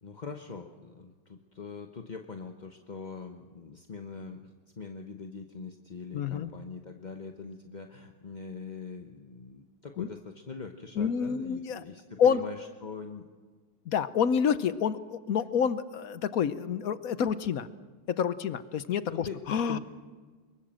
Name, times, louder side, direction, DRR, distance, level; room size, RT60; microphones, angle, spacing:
voice 1, 0.0-4.5 4.8-13.3 19.1-19.4 19.7-19.8, left 5 dB, 35° left, 4 dB, 0.8 m, -42 dB
voice 2, 6.1-6.5 10.0-10.1 11.0-11.8 12.2-12.4 13.9-17.7 18.1-19.8, left 7 dB, 55° left, 14 dB, 1.1 m, -28 dB
24.0 x 22.0 x 7.7 m, 1.4 s
omnidirectional pair, 2.1 m